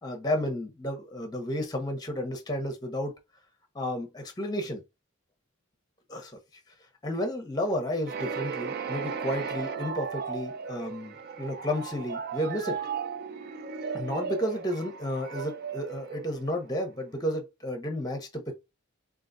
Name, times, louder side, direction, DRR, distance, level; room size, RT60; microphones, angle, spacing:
voice 1, 0.0-3.1 3.7-4.8 6.1-6.4 7.0-12.8 13.9-18.6, equal, 20° left, 0.7 m, -32 dB
sound 1, 8.1-16.8, right 6 dB, 45° right, 0.3 m, -36 dB
3.8 x 2.5 x 2.6 m
head